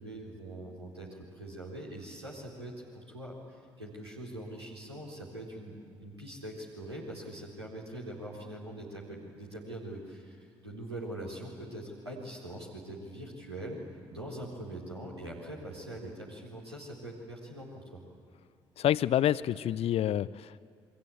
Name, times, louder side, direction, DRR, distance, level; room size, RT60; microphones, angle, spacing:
voice 1, 0.0-13.8 14.1-18.0, right 1 dB, 90° right, -4 dB, 4.2 m, -43 dB
voice 2, 18.8-20.6, left 11 dB, 50° left, 18 dB, 0.7 m, -28 dB
28.5 x 23.0 x 8.7 m, 2.4 s
figure-of-eight pair, 45°, 13 cm